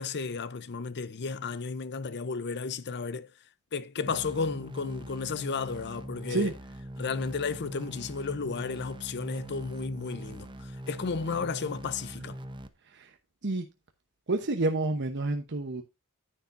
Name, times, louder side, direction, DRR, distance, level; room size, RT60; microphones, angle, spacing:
voice 1, 0.0-3.3 3.7-6.5 7.0-12.4, left 4 dB, 50° left, 0.7 m, -33 dB
sound 1, 4.1-12.7, right 1 dB, 20° right, 0.9 m, -42 dB
voice 2, 14.3-15.8, right 2 dB, 50° right, 1.0 m, -28 dB
10.0 x 9.6 x 2.6 m
head